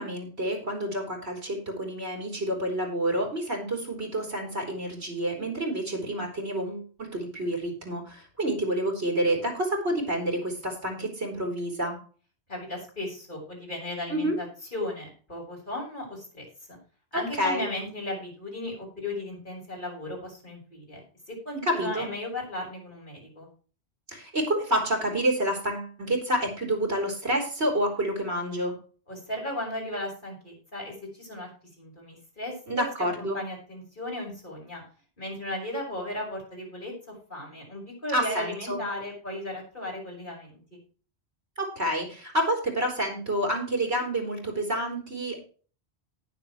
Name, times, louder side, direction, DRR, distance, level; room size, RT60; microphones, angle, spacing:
voice 1, 0.0-12.0 14.1-14.4 17.1-17.7 21.7-22.1 24.1-28.7 32.7-33.4 38.1-38.8 41.6-45.5, right 1 dB, 80° right, 2 dB, 4.0 m, -28 dB
voice 2, 12.5-14.5 14.7-16.8 17.1-23.5 29.1-31.5 31.8-32.9 33.2-34.8 35.2-40.8, left 1 dB, 50° left, -2 dB, 5.9 m, -36 dB
18.5 x 7.0 x 3.1 m, 0.40 s
omnidirectional pair, 1.1 m